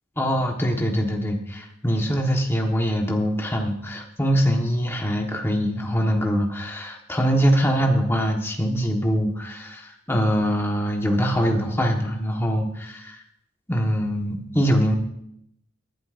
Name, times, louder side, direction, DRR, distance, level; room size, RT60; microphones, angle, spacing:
voice 1, 0.2-13.2 13.7-15.0, equal, 10° left, 1 dB, 1.4 m, -23 dB
18.5 x 11.5 x 2.6 m, 0.76 s
head